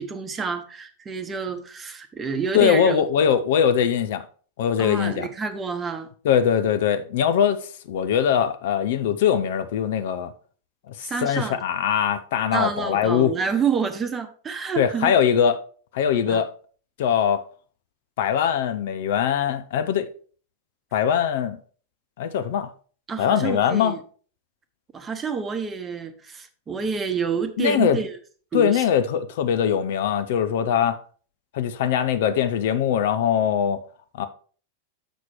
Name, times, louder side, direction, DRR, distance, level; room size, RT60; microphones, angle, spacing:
voice 1, 0.0-3.1 4.8-6.1 11.0-11.6 12.5-15.1 16.3-16.4 23.1-24.0 24.9-28.2 28.5-28.8, right 5 dB, 20° right, 1.0 m, -28 dB
voice 2, 2.5-4.2 4.6-5.3 6.2-10.3 10.9-13.3 14.8-15.6 15.9-16.5 17.0-17.4 18.2-20.1 20.9-21.6 22.2-22.7 23.2-23.9 27.6-28.0 28.5-31.0 31.5-33.8 34.2-34.3, left 8 dB, 55° left, 0.7 m, -22 dB
7.2 x 6.0 x 4.5 m
figure-of-eight pair, 90°, 0 cm